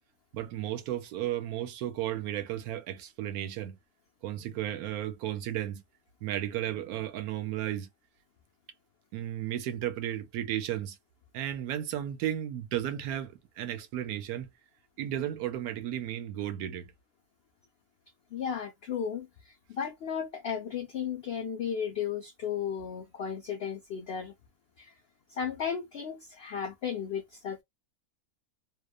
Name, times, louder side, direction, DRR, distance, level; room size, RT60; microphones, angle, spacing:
voice 1, 0.3-3.8 4.2-5.8 6.2-7.9 9.1-11.0 11.3-14.5 15.0-16.9, right 12 dB, 75° right, 1.1 m, -34 dB
voice 2, 18.3-24.3 24.8-24.9 25.3-27.6, left 7 dB, 85° left, 0.5 m, -35 dB
2.8 x 2.2 x 2.3 m
omnidirectional pair, 1.6 m